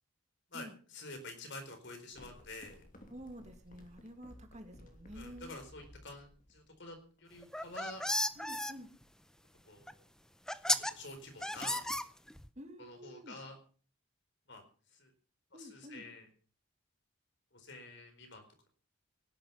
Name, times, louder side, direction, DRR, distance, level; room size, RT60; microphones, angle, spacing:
voice 1, 0.5-2.8 5.1-8.0 9.6-10.0 10.7-11.8 12.8-13.6 14.5-14.6 14.9-15.1 15.6-16.3 17.5-18.4, left 2 dB, 55° left, 6 dB, 4.4 m, -49 dB
sound 1, 2.1-7.2, left 1 dB, 40° left, 3.0 m, -57 dB
voice 2, 3.1-5.6 8.4-8.9 12.6-13.4 15.5-16.1, equal, 35° right, 6 dB, 2.3 m, -50 dB
sound 2, 7.4-8.7 9.9-10.0 10.5-10.9 11.4-12.5, left 1 dB, 5° left, 0.6 m, -33 dB
18.0 x 11.0 x 5.7 m, 0.42 s
head